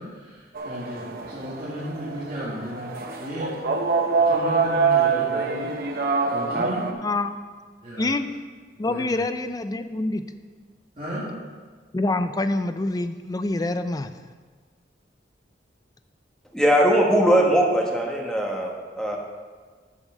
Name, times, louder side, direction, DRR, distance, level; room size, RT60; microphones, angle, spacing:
voice 1, 0.0-2.9 3.2-5.9 6.3-6.9 7.8-8.1 8.8-9.2 11.0-11.3, equal, 40° right, -10 dB, 2.1 m, -35 dB
sound 1, 0.6-6.9, right 4 dB, 55° right, 0.8 m, -25 dB
voice 2, 7.0-7.3 8.0-8.3 8.8-10.2 11.9-14.1, left 2 dB, 20° left, 10 dB, 0.4 m, -26 dB
voice 3, 16.5-19.2, equal, 5° left, 0 dB, 1.1 m, -20 dB
8.4 x 5.3 x 6.4 m, 1.5 s
head